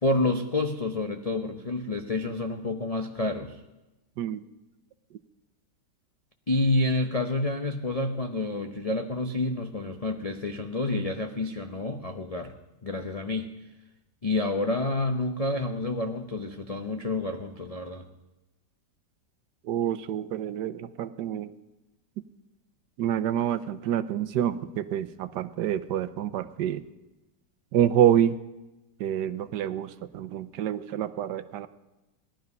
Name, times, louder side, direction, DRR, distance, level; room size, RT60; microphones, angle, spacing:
voice 1, 0.0-3.5 6.5-12.5 12.8-13.5 14.2-18.1, left 2 dB, 70° left, 5 dB, 0.3 m, -29 dB
voice 2, 19.6-21.5 23.0-26.8 27.7-28.4 29.0-31.7, right 10 dB, 75° right, 13 dB, 1.2 m, -27 dB
18.0 x 11.5 x 5.4 m, 1.0 s
omnidirectional pair, 1.9 m